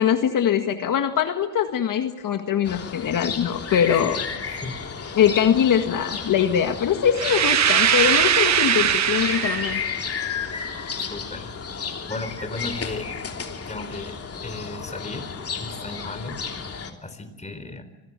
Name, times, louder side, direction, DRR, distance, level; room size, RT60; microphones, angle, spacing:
voice 1, 0.0-4.2 5.2-9.8, left 9 dB, 65° left, 6 dB, 1.8 m, -22 dB
sound 1, 2.6-16.9, left 5 dB, 40° left, 3.1 m, -33 dB
voice 2, 4.0-5.0 11.0-13.1 13.7-17.8, left 2 dB, 20° left, 9 dB, 4.3 m, -36 dB
sound 2, 7.2-9.9, right 9 dB, 50° right, 1.3 m, -20 dB
25.0 x 17.5 x 9.0 m, 1.1 s
cardioid pair, 80°, 34 cm